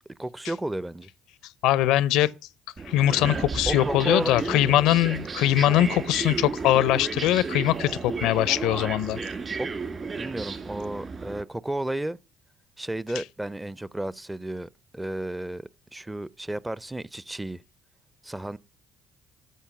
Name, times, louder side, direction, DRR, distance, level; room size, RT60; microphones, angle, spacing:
voice 1, 0.2-1.1 3.7-4.6 9.6-9.7 10.2-12.2 12.8-17.6 18.2-18.6, right 1 dB, 10° right, 0.6 m, -32 dB
voice 2, 1.6-2.3 2.9-9.2, left 14 dB, 75° left, 0.5 m, -22 dB
sound 1, 2.8-11.4, right 4 dB, 40° right, 2.6 m, -33 dB
13.0 x 5.5 x 7.0 m
hypercardioid pair, 60°, 0 cm